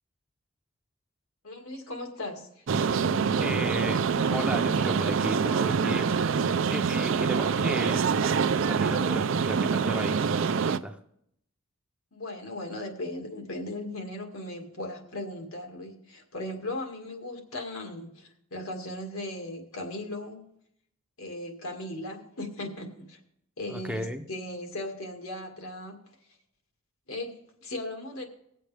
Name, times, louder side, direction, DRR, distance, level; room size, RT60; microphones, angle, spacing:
voice 1, 1.4-2.6 12.1-20.5 21.2-23.2 23.6-26.0 27.1-28.3, left 1 dB, 85° left, 2 dB, 2.0 m, -37 dB
sound 1, 2.7-10.8, right 5 dB, 65° right, 0.4 m, -25 dB
voice 2, 3.4-4.0 4.3-6.1 6.7-11.0 23.7-24.3, right 1 dB, 5° right, 6 dB, 0.6 m, -35 dB
20.0 x 7.6 x 3.4 m, 0.73 s
head